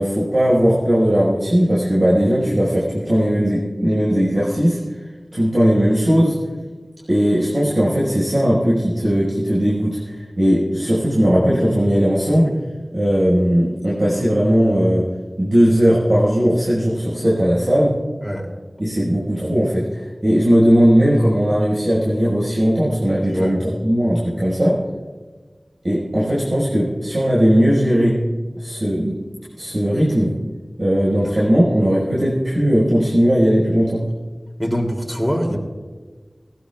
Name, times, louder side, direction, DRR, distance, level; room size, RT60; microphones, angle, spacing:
voice 1, 0.0-4.8 5.3-6.3 7.1-12.5 12.9-15.0 15.4-17.9 18.8-24.8 25.8-28.2 28.6-29.1 29.6-30.3 30.8-34.1, equal, 55° right, -8 dB, 5.1 m, -17 dB
voice 2, 23.3-23.6 31.2-31.3 34.6-35.6, equal, 5° left, 0 dB, 2.9 m, -23 dB
19.5 x 18.0 x 2.4 m, 1.4 s
wide cardioid pair, 55°, 0 cm